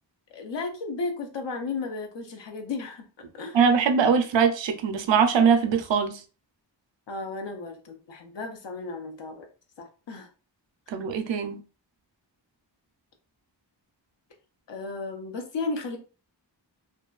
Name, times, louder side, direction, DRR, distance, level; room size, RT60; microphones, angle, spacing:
voice 1, 0.3-3.1 3.3-3.6 7.1-9.5 9.8-10.3 14.7-16.0, left 3 dB, 75° left, 0.6 m, -34 dB
voice 2, 3.5-6.2 10.9-11.6, right 6 dB, 85° right, 0.5 m, -22 dB
2.6 x 2.2 x 2.3 m
wide cardioid pair, 85°, 44 cm